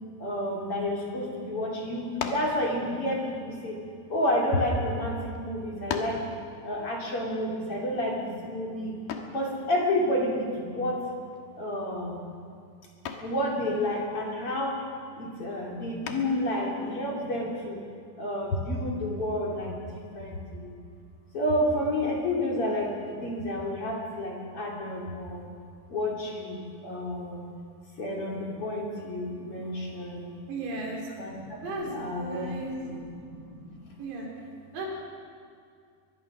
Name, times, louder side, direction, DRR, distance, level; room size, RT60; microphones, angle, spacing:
voice 1, 0.2-3.8 4.1-6.2 6.6-8.9 9.3-11.0 11.6-12.3 13.2-14.8 15.2-17.8 18.2-20.7 21.3-25.5 25.9-27.4 28.0-30.3 31.2-32.5 32.8-33.8, left 1 dB, 35° left, -2 dB, 3.4 m, -30 dB
sound 1, 2.2-2.6 3.5-4.7 5.3-5.4 5.9-6.3 9.1-9.4 11.3-11.7 12.1-12.4 13.0-13.4 16.0-16.5, left 6 dB, 70° left, 3.3 m, -36 dB
voice 2, 30.5-31.0 31.6-32.9 34.0-34.3 34.7-34.9, right 2 dB, 85° right, -1 dB, 6.3 m, -35 dB
23.5 x 21.0 x 6.2 m, 2.2 s
omnidirectional pair, 4.9 m